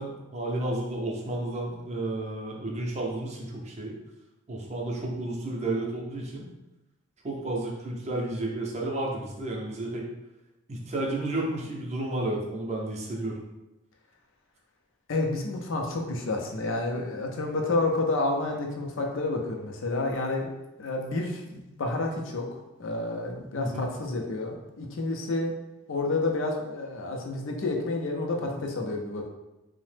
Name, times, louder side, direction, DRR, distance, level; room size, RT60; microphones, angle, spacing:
voice 1, 0.0-3.9 4.5-6.4 7.2-10.1 10.7-13.4 23.6-23.9, right 1 dB, 35° right, -1 dB, 0.5 m, -32 dB
voice 2, 15.1-20.5 20.8-25.5 25.9-29.3, left 2 dB, 65° left, 1 dB, 0.5 m, -30 dB
2.8 x 2.1 x 3.2 m, 0.98 s
head